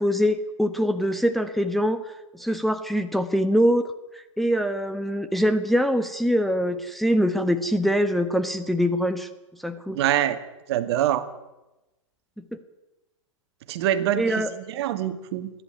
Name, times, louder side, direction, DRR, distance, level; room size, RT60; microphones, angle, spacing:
voice 1, 0.0-2.0 2.3-3.9 4.1-9.3 9.6-10.0 12.4-12.5 14.2-14.5, equal, ahead, 6 dB, 1.3 m, -23 dB
voice 2, 9.9-10.4 10.7-11.3 13.7-15.5, right 11 dB, 55° right, 11 dB, 2.0 m, -25 dB
29.0 x 11.0 x 9.4 m, 1.0 s
hypercardioid pair, 115°, 16 cm